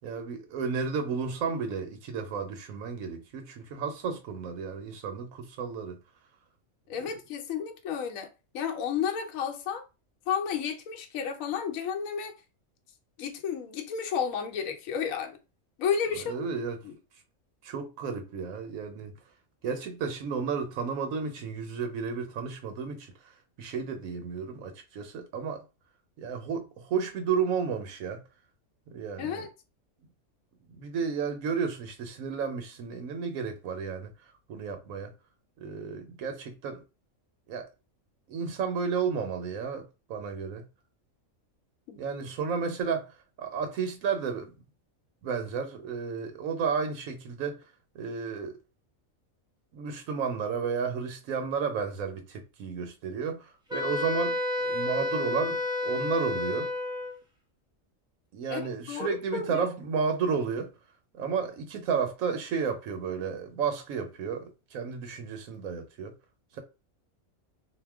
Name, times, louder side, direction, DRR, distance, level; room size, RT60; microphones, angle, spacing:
voice 1, 0.0-6.0 16.1-16.8 17.6-19.1 19.6-23.3 23.6-25.6 26.2-28.2 28.9-29.5 30.7-34.1 34.5-35.1 35.6-36.8 37.5-37.7 38.3-40.6 42.0-44.5 45.2-47.6 47.9-48.6 49.7-56.7 58.3-60.7 61.1-66.1 66.5-66.6, right 6 dB, 85° right, 1.1 m, -32 dB
voice 2, 6.9-8.3 8.5-9.8 10.3-12.3 13.2-15.4 15.8-16.4 16.8-16.9 29.2-29.5 41.9-42.0 58.5-58.6 58.9-59.7, left 7 dB, 80° left, 1.0 m, -32 dB
Wind instrument woodwind instrument, 53.7-57.2, left 2 dB, 5° right, 0.5 m, -30 dB
2.8 x 2.1 x 3.4 m
omnidirectional pair, 1.4 m